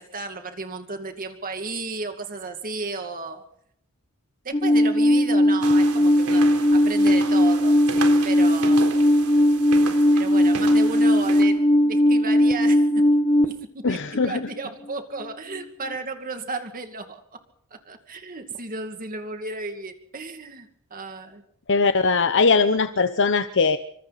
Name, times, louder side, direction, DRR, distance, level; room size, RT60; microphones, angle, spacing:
voice 1, 0.0-3.4 4.4-8.9 10.1-13.1 13.4-17.2 17.7-21.4, right 3 dB, 40° right, 6 dB, 2.3 m, -34 dB
Alarm, 4.5-13.4, equal, 25° left, 1.3 m, -18 dB
sound 1, 5.6-11.4, right 4 dB, 75° right, 4.0 m, -35 dB
voice 2, 13.8-14.4 21.7-23.8, left 4 dB, 55° left, 9 dB, 0.9 m, -20 dB
26.5 x 25.5 x 4.2 m, 0.68 s
head